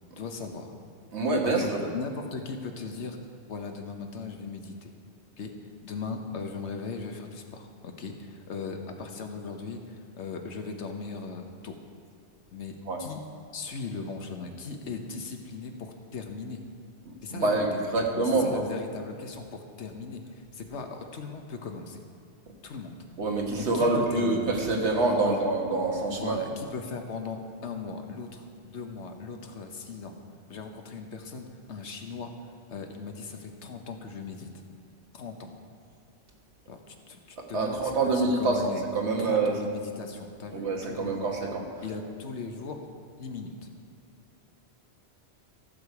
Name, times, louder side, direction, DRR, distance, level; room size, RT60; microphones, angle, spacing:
voice 1, 0.2-0.7 1.4-3.2 3.5-4.9 5.4-5.5 5.8-11.8 12.5-13.2 13.5-16.6 17.2-22.0 22.6-23.0 23.6-24.5 25.1-25.4 26.1-30.2 30.5-32.3 32.7-34.5 35.1-35.5 36.7-38.8 39.2-41.3 41.8-42.8 43.2-43.5, left 4 dB, 85° left, 4 dB, 1.3 m, -38 dB
voice 2, 1.1-1.8 12.9-13.0 17.0-18.6 23.2-26.4 37.4-39.5 40.5-41.6, right 3 dB, 75° right, 1 dB, 1.6 m, -26 dB
14.5 x 6.7 x 4.7 m, 2.6 s
omnidirectional pair, 1.1 m